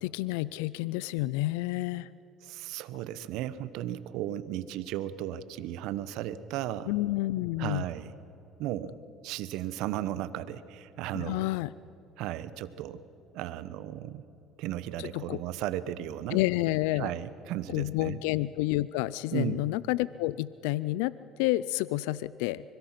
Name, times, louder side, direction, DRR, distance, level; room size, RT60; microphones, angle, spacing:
voice 1, 0.0-2.1 6.9-7.8 11.1-11.7 15.0-15.4 16.3-17.1 17.7-22.6, left 17 dB, 85° left, 19 dB, 0.4 m, -29 dB
voice 2, 2.4-6.9 7.6-8.1 8.6-9.0 9.2-11.5 12.2-13.0 13.3-14.2 14.6-16.4 16.9-18.2 19.3-19.6, right 12 dB, 75° right, 15 dB, 1.0 m, -35 dB
25.0 x 22.0 x 5.8 m, 2.9 s
supercardioid pair, 80°, 0 cm